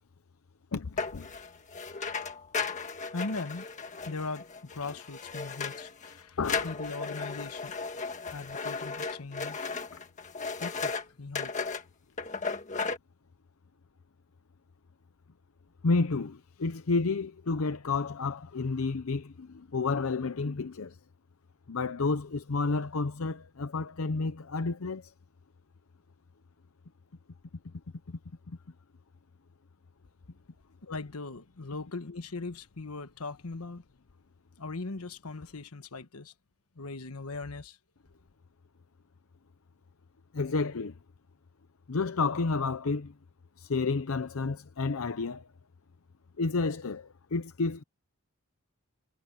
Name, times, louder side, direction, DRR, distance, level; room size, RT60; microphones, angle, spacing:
voice 1, 0.7-1.3 4.8-4.9 6.4-6.7 15.8-21.0 21.7-25.1 28.5-28.6 40.3-40.9 41.9-43.1 43.6-45.4 46.4-47.8, left 4 dB, 75° left, 0.7 m, -30 dB
sound 1, 1.0-6.2 6.4-11.0 11.4-11.8 12.2-13.0, left 4 dB, 35° left, 1.7 m, -35 dB
voice 2, 3.1-3.7 4.0-7.7 8.3-9.7 10.6-11.5 30.8-33.8 34.6-36.3 36.7-37.8, left 3 dB, 90° left, 1.2 m, -39 dB
head